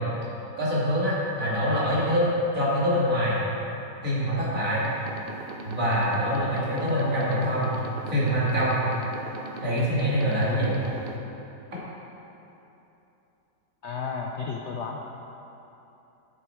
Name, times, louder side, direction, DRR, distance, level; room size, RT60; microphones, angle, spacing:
voice 1, 0.6-3.4 4.0-4.8 5.6-8.8 9.6-10.8, equal, 50° right, -7 dB, 2.7 m, -25 dB
sound 1, 4.7-11.2, right 3 dB, 85° right, 0.5 m, -40 dB
voice 2, 13.8-15.0, left 5 dB, 75° left, 1 dB, 0.6 m, -32 dB
12.0 x 6.9 x 4.5 m, 3.0 s
omnidirectional pair, 1.9 m